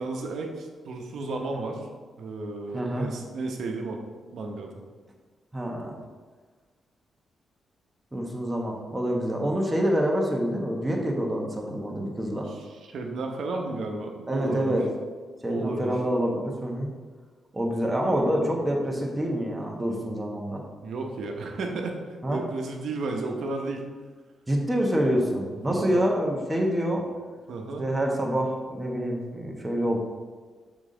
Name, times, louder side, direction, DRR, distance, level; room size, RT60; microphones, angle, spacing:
voice 1, 0.0-1.9 2.2-4.0 4.3-4.7 12.5-12.6 12.9-14.7 15.5-15.9 20.8-23.9 25.5-26.0 27.5-27.8, right 3 dB, 70° right, 2 dB, 0.9 m, -33 dB
voice 2, 2.7-3.1 5.5-6.0 8.1-12.5 14.3-14.9 15.4-16.9 17.5-20.6 22.2-22.4 24.5-27.1 27.8-30.0, equal, 15° right, -1 dB, 1.1 m, -26 dB
7.0 x 3.9 x 3.9 m, 1.5 s
cardioid pair, 105°, 0 cm